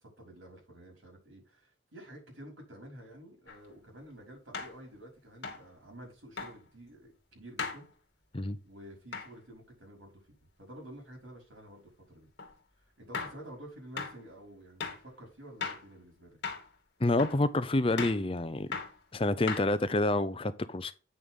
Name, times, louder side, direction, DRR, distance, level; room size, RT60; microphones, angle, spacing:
voice 1, 0.0-7.9 8.6-10.2 10.6-12.3 13.0-16.4, right 1 dB, 85° right, 5.6 m, -50 dB
sound 1, 3.5-3.6 4.5-4.8 5.4-5.7 6.4-6.6 7.6-7.8 9.1-9.3 12.4-12.5 13.1-13.4 14.0-14.2 14.8-15.1 15.6-15.9 16.4-16.7 17.2-17.4 18.0-18.2 18.7-19.0 19.5-20.0, left 5 dB, 60° left, 2.4 m, -37 dB
voice 2, 17.0-18.7 19.1-20.9, left 2 dB, 25° left, 0.6 m, -28 dB
8.9 x 6.6 x 3.8 m
head